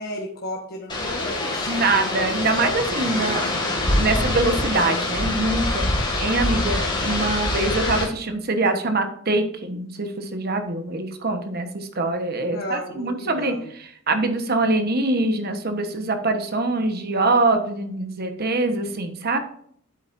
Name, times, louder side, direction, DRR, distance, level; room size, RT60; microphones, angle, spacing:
voice 1, 0.0-1.6 7.0-7.2 12.4-13.7, left 1 dB, 50° left, -1 dB, 1.3 m, -34 dB
sound 1, 0.9-8.0, left 2 dB, 20° left, 2.3 m, -24 dB
voice 2, 1.7-3.5 4.0-5.9 6.2-19.4, right 2 dB, 50° right, 6 dB, 1.2 m, -24 dB
8.5 x 8.0 x 2.7 m, 0.63 s
head